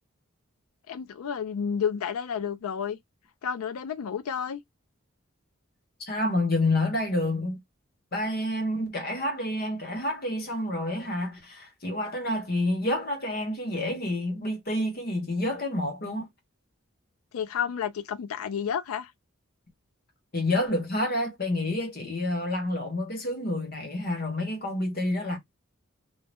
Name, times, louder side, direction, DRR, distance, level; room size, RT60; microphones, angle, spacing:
voice 1, 0.9-3.0 3.4-4.6 17.3-19.1, left 7 dB, 90° left, 0.4 m, -31 dB
voice 2, 6.1-7.6 8.1-16.3 20.3-25.4, left 1 dB, 45° left, 1.0 m, -28 dB
2.7 x 2.1 x 3.3 m
head